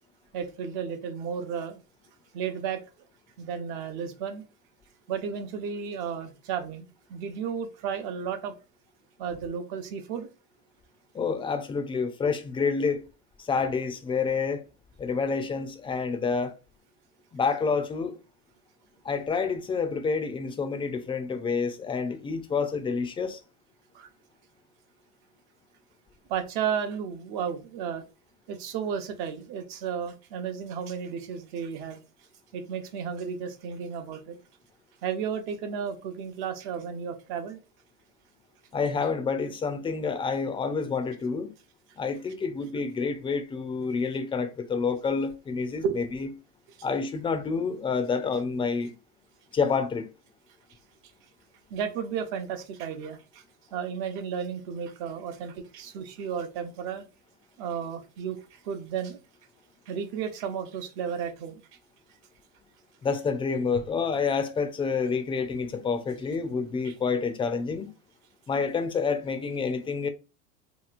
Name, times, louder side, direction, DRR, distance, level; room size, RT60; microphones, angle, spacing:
voice 1, 0.3-1.8 2.3-2.8 3.4-4.4 5.1-8.5 9.2-10.3 23.9-24.1 26.3-28.0 28.5-32.0 32.5-34.4 35.0-37.6 45.8-46.0 51.7-53.4 53.7-57.0 57.6-59.2 59.9-61.6 66.8-66.9, right 7 dB, 65° right, 0.8 m, -33 dB
voice 2, 11.1-13.0 13.4-14.6 15.0-16.5 17.3-18.2 19.0-23.4 38.7-41.5 42.0-46.3 46.8-48.9 49.5-50.1 63.0-67.9 68.5-70.1, left 5 dB, 15° left, 0.3 m, -28 dB
2.9 x 2.9 x 2.4 m
supercardioid pair, 110°, 34 cm